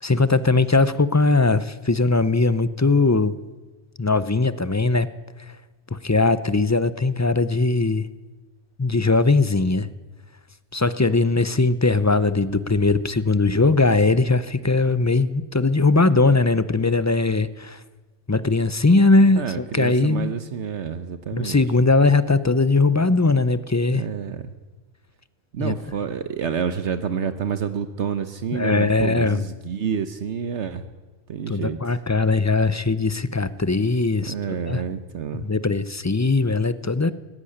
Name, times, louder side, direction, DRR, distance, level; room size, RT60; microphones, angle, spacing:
voice 1, 0.0-3.4 4.0-5.1 5.9-8.1 8.8-9.9 10.7-17.8 18.3-20.3 21.3-24.0 25.6-25.7 28.5-29.4 31.5-34.8 35.3-37.1, left 3 dB, 20° left, 15 dB, 0.4 m, -20 dB
voice 2, 19.4-21.6 23.9-24.5 25.5-30.8 31.3-32.0 34.3-35.5, right 7 dB, 70° right, 10 dB, 1.2 m, -28 dB
18.5 x 15.0 x 10.0 m, 1.2 s
omnidirectional pair, 1.3 m